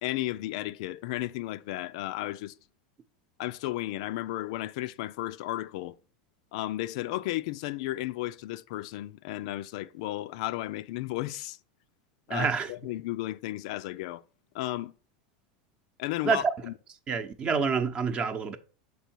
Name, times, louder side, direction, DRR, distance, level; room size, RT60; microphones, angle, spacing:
voice 1, 0.0-2.5 3.4-6.0 6.5-11.6 12.3-14.2 14.5-14.9 16.0-16.7, left 16 dB, 65° left, 0.4 m, -34 dB
voice 2, 12.3-12.7 16.2-16.5 17.1-18.6, right 5 dB, 25° right, 0.8 m, -27 dB
6.8 x 4.5 x 4.5 m
supercardioid pair, 150°, 4 cm